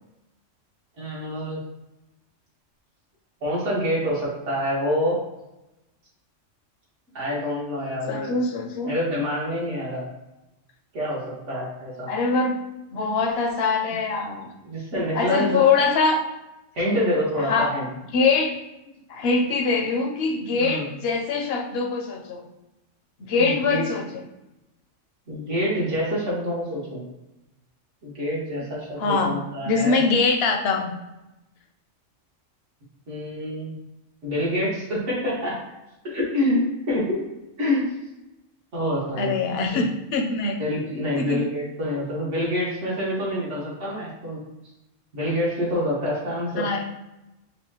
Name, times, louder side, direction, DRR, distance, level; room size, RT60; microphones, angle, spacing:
voice 1, 1.0-1.6 3.4-5.2 7.1-8.3 8.9-10.1 10.9-12.1 14.6-15.6 16.7-17.9 20.6-20.9 23.4-23.9 25.3-27.0 28.0-30.0 33.1-33.7 34.2-35.6 36.0-37.3 37.6-37.9 38.7-39.3 39.7-39.8 40.6-44.4 45.1-46.7, equal, 70° right, -6 dB, 1.8 m, -26 dB
voice 2, 8.1-8.9 12.1-12.6 12.9-14.5 15.1-16.2 17.4-17.8 18.1-18.6 19.1-22.5 23.2-24.1 29.0-29.3 29.7-30.9 39.2-40.6 41.2-41.4 46.6-46.8, left 4 dB, 60° left, 3 dB, 0.8 m, -23 dB
5.3 x 2.2 x 2.8 m, 0.95 s
omnidirectional pair, 1.3 m